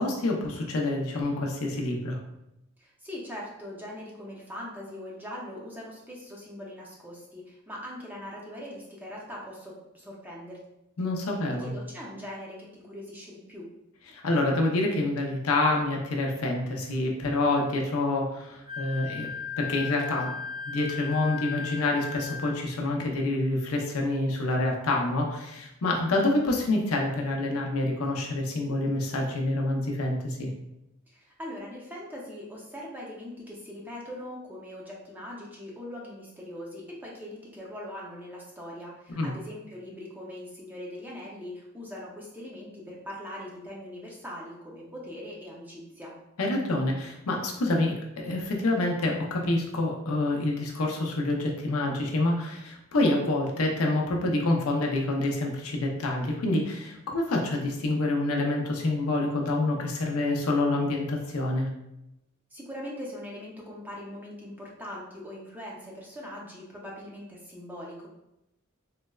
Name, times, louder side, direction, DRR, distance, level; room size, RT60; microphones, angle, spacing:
voice 1, 0.0-2.2 11.0-11.7 14.1-19.3 19.6-20.3 20.6-30.5 39.2-39.3 46.4-61.7, left 2 dB, 80° left, 0 dB, 0.6 m, -27 dB
voice 2, 2.8-10.6 11.0-11.1 11.6-13.7 31.1-46.1 62.5-68.1, left 1 dB, 10° right, -4 dB, 0.5 m, -41 dB
Wind instrument woodwind instrument, 18.7-22.5, left 5 dB, 75° right, 0.8 m, -36 dB
3.9 x 2.1 x 2.3 m, 0.88 s
head